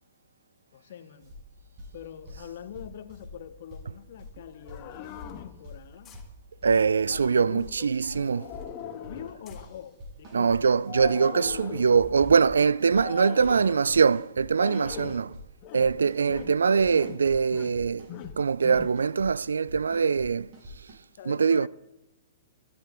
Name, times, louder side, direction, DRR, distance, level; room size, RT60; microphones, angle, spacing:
voice 1, 0.7-1.3 1.9-6.2 7.1-8.0 8.9-10.7 13.5-14.0 15.8-16.0 21.1-21.7, left 9 dB, 55° left, 1.5 m, -44 dB
sound 1, 1.2-10.6 10.8-11.6 11.9-12.5 12.8-13.5 13.9-14.5 14.8-15.4 15.8-16.4 16.7-17.4 17.7-18.3 18.6-19.3 19.7-20.3 20.5-20.9, left 1 dB, 35° right, 7.5 m, -47 dB
sound 2, 3.7-3.8 4.7-5.4 5.9-6.2 7.9-8.8 9.5-9.6 10.3-10.4 10.6-10.7 11.0-11.1 12.0-12.5 12.9-13.9, left 4 dB, 15° left, 3.3 m, -49 dB
sound 3, 4.4-5.6 8.0-9.4 10.9-12.0 12.9-13.8 14.5-15.3 15.6-16.0 16.3-16.6 16.9-17.8 18.1-19.0, left 10 dB, 35° left, 1.5 m, -40 dB
voice 2, 6.6-8.5 10.3-15.4 15.7-20.5 21.3-21.7, right 5 dB, 70° right, 0.4 m, -23 dB
27.0 x 10.5 x 3.8 m
figure-of-eight pair, 115°, 0 cm